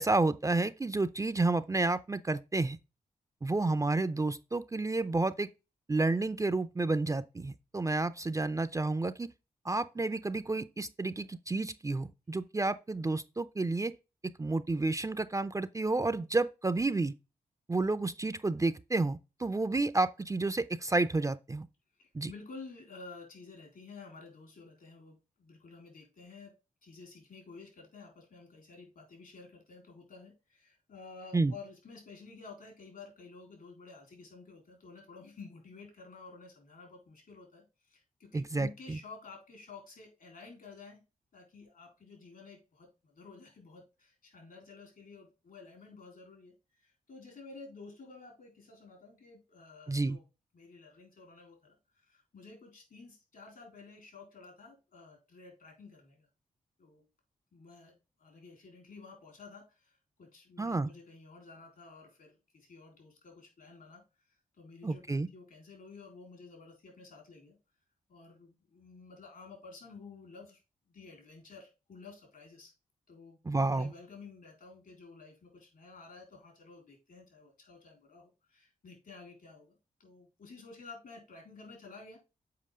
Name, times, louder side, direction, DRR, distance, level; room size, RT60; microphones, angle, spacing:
voice 1, 0.0-2.8 3.4-5.5 5.9-9.3 9.6-13.9 14.4-17.1 17.7-21.7 22.1-22.3 31.3-31.5 38.3-39.0 49.9-50.2 60.6-60.9 64.8-65.3 73.5-73.9, right 2 dB, 20° right, 0.5 m, -30 dB
voice 2, 22.0-26.5 26.8-41.0 41.3-50.2 50.5-56.3 56.8-57.0 57.5-57.9 58.2-67.6 68.1-70.6 70.9-72.7 73.1-82.2, left 4 dB, 70° left, 3.7 m, -52 dB
7.7 x 4.8 x 3.6 m
supercardioid pair, 45°, 15 cm